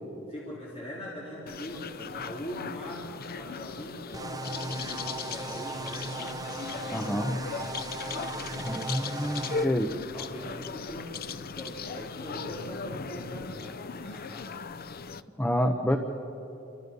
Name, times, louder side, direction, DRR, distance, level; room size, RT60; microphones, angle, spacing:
voice 1, 0.3-6.4 6.6-7.4 8.0-9.9 10.1-11.1 11.5-14.7, equal, 30° left, -6 dB, 3.9 m, -42 dB
sound 1, 1.5-15.2, left 5 dB, 45° left, 0.7 m, -38 dB
sound 2, 4.1-9.7, right 2 dB, 15° right, 0.7 m, -37 dB
voice 2, 6.9-7.3 8.6-9.9 15.4-16.0, equal, 10° left, 5 dB, 1.0 m, -28 dB
30.0 x 25.0 x 5.5 m, 3.0 s
head